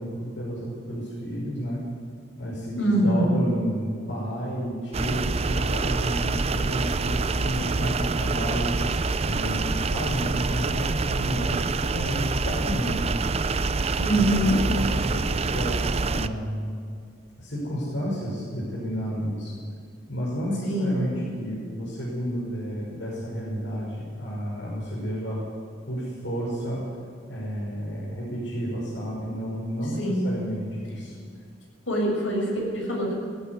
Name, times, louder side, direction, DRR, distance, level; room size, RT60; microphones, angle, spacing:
voice 1, 0.0-1.8 2.4-8.8 9.2-13.0 14.1-16.8 17.4-19.5 20.1-25.4 25.9-26.8 27.3-31.1, equal, 70° left, -6 dB, 6.0 m, -31 dB
voice 2, 2.8-3.3 14.0-14.6 20.7-21.0 30.0-30.4 31.9-33.2, right 1 dB, 85° left, -2 dB, 7.7 m, -24 dB
sound 1, 4.9-16.3, right 3 dB, 30° right, 0.5 m, -26 dB
18.5 x 14.5 x 9.8 m, 2.2 s
head